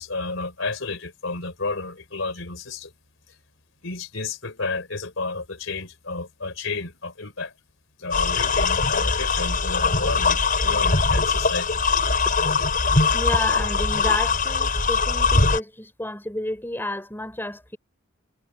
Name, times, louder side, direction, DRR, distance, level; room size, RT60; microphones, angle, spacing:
voice 1, 0.0-2.9 3.8-7.5 8.0-11.7 13.0-13.1, left 3 dB, 70° left, 4.1 m, -31 dB
sound 1, 8.1-15.6, left 4 dB, 45° left, 6.1 m, -21 dB
voice 2, 13.1-17.8, left 1 dB, 10° left, 4.7 m, -31 dB
head